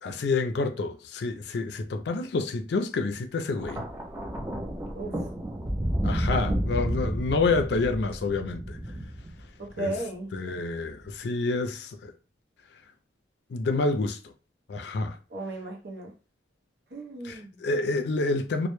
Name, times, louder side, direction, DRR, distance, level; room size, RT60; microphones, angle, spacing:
voice 1, 0.0-3.8 6.0-8.8 9.8-9.9 10.3-12.1 13.5-14.2 14.7-15.2 17.2-18.7, left 3 dB, 70° left, 0.4 m, -28 dB
Thunder, 3.6-9.9 10.9-11.2, equal, 15° right, 0.3 m, -31 dB
voice 2, 9.6-10.3 15.3-16.1 16.9-17.6, right 2 dB, 65° right, 0.6 m, -35 dB
2.1 x 2.0 x 3.0 m
head